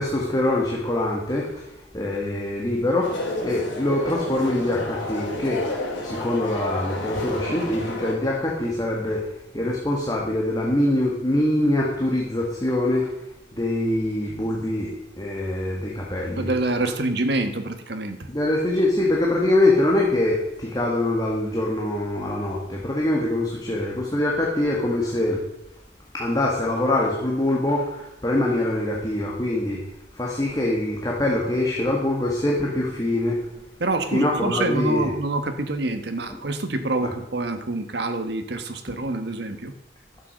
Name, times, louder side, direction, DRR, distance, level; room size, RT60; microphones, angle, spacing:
voice 1, 0.0-5.7 6.0-13.1 13.5-16.5 18.3-25.4 26.1-29.8 30.1-33.4 34.1-35.1 37.0-37.1 38.9-39.0, left 1 dB, 20° left, -3 dB, 1.7 m, -24 dB
sound 1, 3.0-8.1, left 2 dB, 75° left, 3.0 m, -30 dB
voice 2, 16.4-18.2 33.8-39.7, right 2 dB, 60° right, 8 dB, 1.2 m, -26 dB
11.5 x 7.5 x 6.3 m, 0.88 s
head